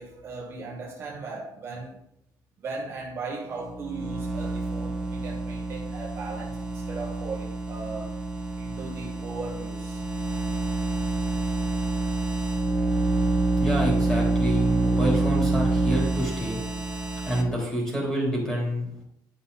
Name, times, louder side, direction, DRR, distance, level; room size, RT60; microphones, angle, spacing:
voice 1, 0.0-2.0 2.6-8.1 8.6-10.0, right 3 dB, 30° right, -1 dB, 1.2 m, -37 dB
sound 1, 3.6-17.4, right 2 dB, 10° right, 1.1 m, -27 dB
voice 2, 13.6-16.6 17.3-18.9, equal, 10° left, -3 dB, 3.4 m, -27 dB
11.0 x 5.6 x 4.1 m, 0.75 s
cardioid pair, 180°, 8 cm